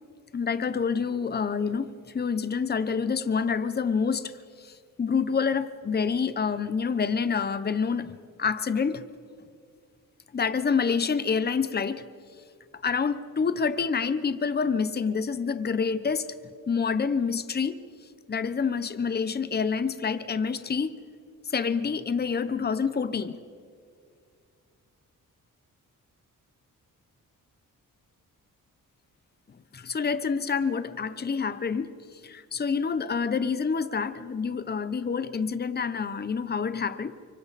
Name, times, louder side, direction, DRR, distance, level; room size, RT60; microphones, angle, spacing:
voice 1, 0.3-9.0 10.3-12.1 12.7-16.3 16.7-17.8 18.3-21.0 21.4-23.4 29.7-37.3, left 5 dB, 30° left, 13 dB, 0.9 m, -27 dB
29.5 x 25.0 x 4.2 m, 2.2 s
cardioid pair, 95°, 33 cm